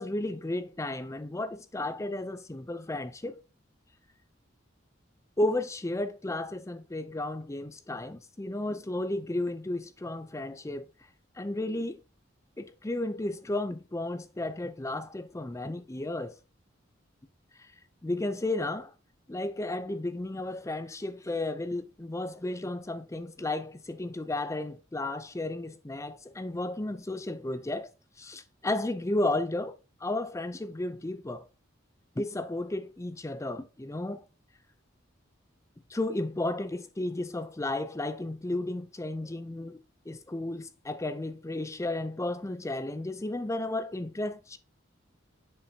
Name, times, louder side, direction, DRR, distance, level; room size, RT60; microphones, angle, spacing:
voice 1, 0.0-3.4 5.4-10.9 11.4-12.0 12.6-16.3 17.6-17.7 18.0-18.9 19.3-27.9 28.2-31.5 32.2-34.2 35.9-44.6, left 2 dB, 15° left, 0.5 m, -33 dB
7.0 x 5.5 x 2.8 m
head